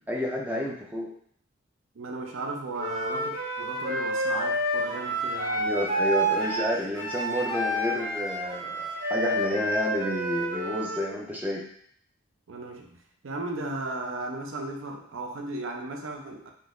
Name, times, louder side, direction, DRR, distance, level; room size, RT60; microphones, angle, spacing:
voice 1, 0.1-1.1 5.6-11.6, left 1 dB, 10° right, -1 dB, 0.3 m, -30 dB
voice 2, 1.9-5.7 12.5-16.5, right 2 dB, 70° right, 3 dB, 0.5 m, -35 dB
Wind instrument woodwind instrument, 2.8-11.1, right 1 dB, 45° right, 1.1 m, -29 dB
3.7 x 2.7 x 2.5 m, 0.64 s
head